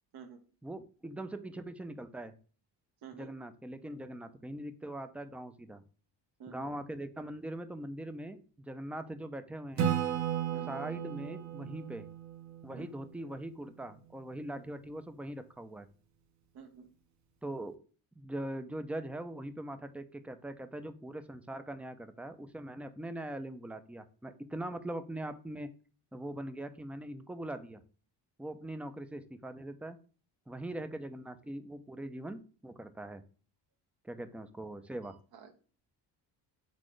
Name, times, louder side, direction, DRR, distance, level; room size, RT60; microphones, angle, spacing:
voice 1, 0.6-2.3 3.1-5.8 6.5-9.9 10.7-12.1 12.6-15.9 17.4-17.8 18.2-25.7 26.1-27.8 28.4-30.0 30.5-33.2 34.0-35.2, right 1 dB, 5° right, 9 dB, 0.4 m, -41 dB
voice 2, 3.0-3.4 6.4-6.7 10.5-10.8 12.8-12.9 14.6-14.7 16.5-16.9 34.7-35.5, right 6 dB, 65° right, 5 dB, 1.0 m, -51 dB
Acoustic guitar / Strum, 9.8-13.3, right 9 dB, 45° right, 0.8 m, -35 dB
4.2 x 3.7 x 3.1 m, 0.39 s
cardioid pair, 120°, 41 cm